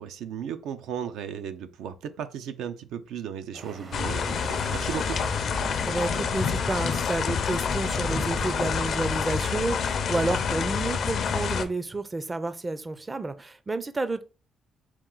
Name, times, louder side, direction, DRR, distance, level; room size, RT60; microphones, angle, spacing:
voice 1, 0.0-5.2, right 8 dB, 85° right, 0.4 m, -35 dB
sound 1, 3.5-10.0, right 4 dB, 50° right, 0.8 m, -41 dB
sound 2, 3.9-11.6, left 6 dB, 60° left, 0.5 m, -27 dB
voice 2, 5.8-14.2, right 2 dB, 25° right, 0.4 m, -30 dB
4.3 x 2.3 x 3.7 m
cardioid pair, 90°, 0 cm